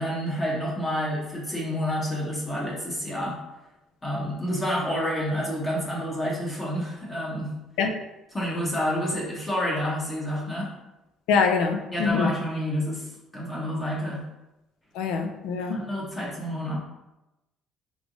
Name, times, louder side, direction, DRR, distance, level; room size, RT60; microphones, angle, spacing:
voice 1, 0.0-3.4 4.0-7.5 8.3-10.7 11.9-14.2 15.7-16.8, equal, 20° left, -5 dB, 0.9 m, -29 dB
voice 2, 11.3-12.3 15.0-15.8, left 5 dB, 90° left, 5 dB, 0.4 m, -24 dB
3.6 x 3.3 x 2.6 m, 0.95 s
cardioid pair, 125°, 0 cm